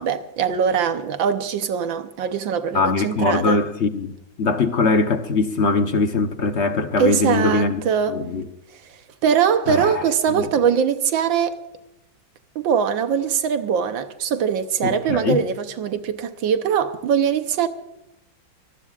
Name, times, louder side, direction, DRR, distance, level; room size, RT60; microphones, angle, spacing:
voice 1, 0.0-3.6 7.0-8.2 9.2-11.6 12.5-17.7, right 7 dB, 75° right, 1.6 m, -22 dB
voice 2, 2.7-7.8 8.1-8.5 9.7-10.0 10.3-10.5 14.8-15.4, left 3 dB, 50° left, 0.9 m, -21 dB
24.5 x 20.0 x 2.4 m
omnidirectional pair, 2.1 m